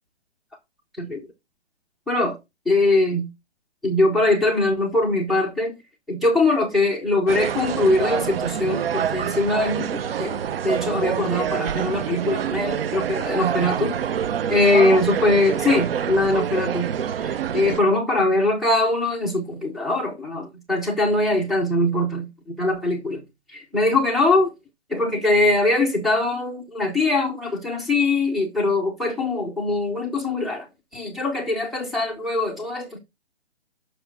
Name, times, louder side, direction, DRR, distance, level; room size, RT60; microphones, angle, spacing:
voice 1, 1.0-1.3 2.1-2.4 2.7-3.3 3.8-5.7 6.1-14.0 14.5-16.9 17.2-23.2 23.5-24.5 24.9-30.7 30.9-33.0, left 2 dB, ahead, 0.5 m, -22 dB
sound 1, 7.3-17.8, right 8 dB, 60° right, 0.6 m, -26 dB
6.9 x 6.0 x 6.0 m
hypercardioid pair, 150°, 33 cm